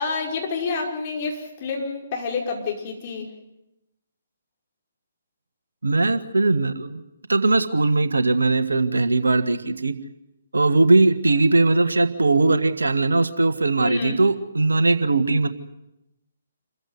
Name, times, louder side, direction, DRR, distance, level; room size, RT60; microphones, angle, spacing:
voice 1, 0.0-3.4 13.8-14.2, left 4 dB, 35° left, 0 dB, 5.4 m, -28 dB
voice 2, 5.8-7.0 7.3-9.9 10.5-15.5, right 3 dB, 70° right, 11 dB, 1.5 m, -19 dB
28.0 x 15.0 x 9.7 m, 0.90 s
figure-of-eight pair, 135°, 0 cm